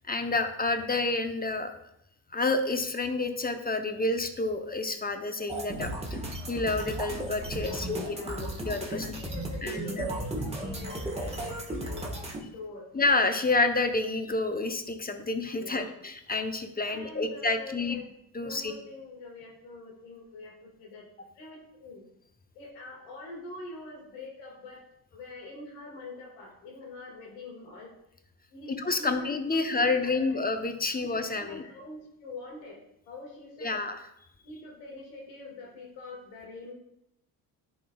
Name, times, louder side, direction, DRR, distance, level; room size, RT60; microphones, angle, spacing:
voice 1, 0.1-1.7 2.3-6.2 6.5-9.1 9.6-10.1 12.9-18.0 18.3-18.7 28.7-31.6 33.6-34.0, left 3 dB, 20° left, 7 dB, 0.7 m, -29 dB
sound 1, 5.5-12.4, right 1 dB, 15° right, 1.4 m, -35 dB
voice 2, 7.5-8.5 8.9-12.1 12.4-12.9 15.6-15.9 16.8-18.1 18.4-22.1 22.5-24.8 25.1-27.9 28.5-30.4 31.0-32.8 33.1-33.8 34.4-36.7, left 2 dB, 90° left, 0 dB, 1.7 m, -45 dB
10.5 x 4.3 x 2.3 m, 0.78 s
supercardioid pair, 60°, 46 cm